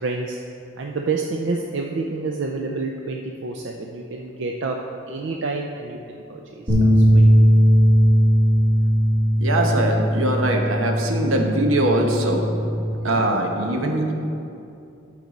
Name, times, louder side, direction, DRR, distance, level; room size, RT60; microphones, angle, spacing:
voice 1, 0.0-0.4 0.8-4.8 5.1-7.3, right 3 dB, 60° right, 1 dB, 0.5 m, -28 dB
sound 1, 6.7-12.9, equal, 40° right, 2.0 m, -18 dB
voice 2, 9.4-12.5 13.0-14.1, right 1 dB, 80° right, 3 dB, 1.0 m, -22 dB
13.5 x 4.6 x 4.0 m, 2.6 s
head